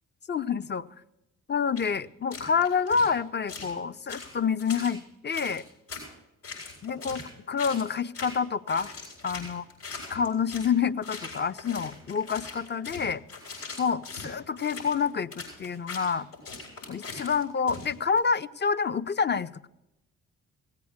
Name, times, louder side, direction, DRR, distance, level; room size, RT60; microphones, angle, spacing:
voice 1, 0.3-0.9 1.5-5.6 6.8-7.2 7.5-8.9 9.2-9.7 10.1-13.2 13.8-16.3 16.9-19.7, left 6 dB, 30° left, 14 dB, 0.6 m, -28 dB
sound 1, 1.8-1.9 2.3-3.1 3.5-3.7 4.1-5.0 5.3-6.1 6.4-7.3 7.6-7.9 8.1-8.4 8.7-10.7 11.0-18.2, left 4 dB, 80° left, 7.1 m, -41 dB
17.5 x 8.4 x 6.5 m, 0.91 s
hypercardioid pair, 45°, 34 cm